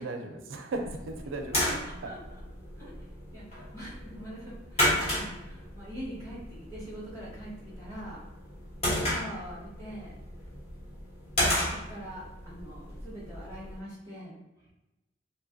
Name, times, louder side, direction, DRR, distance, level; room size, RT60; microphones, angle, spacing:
voice 1, 0.0-2.1, right 2 dB, 80° right, 5 dB, 0.4 m, -37 dB
sound 1, 0.7-13.8, left 1 dB, 35° left, 1.1 m, -34 dB
voice 2, 1.6-2.2 2.8-2.9 3.3-8.2 8.8-10.1 11.4-14.4, equal, 15° left, -8 dB, 1.3 m, -43 dB
3.0 x 2.4 x 2.5 m, 0.99 s
head